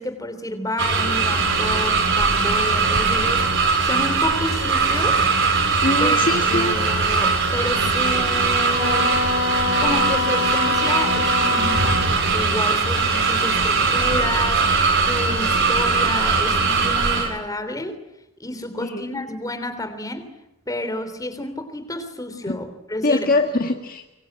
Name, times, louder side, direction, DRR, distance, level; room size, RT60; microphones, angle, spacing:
voice 1, 0.0-5.3 6.0-9.2 9.8-18.0 18.4-20.3 20.7-23.3, left 1 dB, 15° left, 10 dB, 3.4 m, -30 dB
sound 1, 0.8-17.3, right 4 dB, 60° right, 6.4 m, -20 dB
voice 2, 5.8-6.7 18.8-19.1 23.0-24.1, left 2 dB, 40° left, 5 dB, 1.7 m, -22 dB
Wind instrument woodwind instrument, 8.7-12.2, left 4 dB, 60° left, 3.1 m, -25 dB
24.5 x 24.0 x 8.9 m, 0.91 s
head